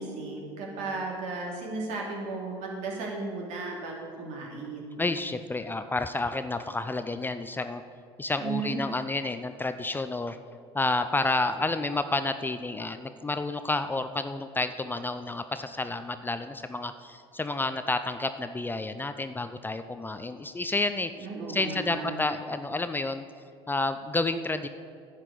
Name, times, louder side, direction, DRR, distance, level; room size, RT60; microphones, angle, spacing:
voice 1, 0.0-5.0 8.4-8.8 21.2-22.2, right 3 dB, 65° right, -1 dB, 2.9 m, -35 dB
voice 2, 5.0-7.8 8.2-10.4 10.7-21.1 21.5-23.3 23.7-24.7, left 2 dB, 15° left, 10 dB, 0.5 m, -30 dB
10.5 x 6.0 x 8.4 m, 2.3 s
supercardioid pair, 85°, 13 cm